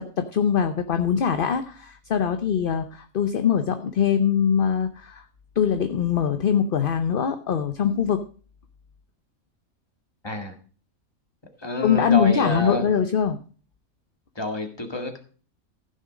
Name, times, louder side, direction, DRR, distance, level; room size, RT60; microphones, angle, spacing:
voice 1, 0.0-5.2 5.6-8.2 11.8-13.4, left 8 dB, 50° left, 8 dB, 0.8 m, -22 dB
voice 2, 10.2-10.5 11.6-12.9 14.4-15.2, left 1 dB, 20° left, 4 dB, 1.8 m, -28 dB
15.0 x 6.5 x 5.1 m, 0.40 s
omnidirectional pair, 1.5 m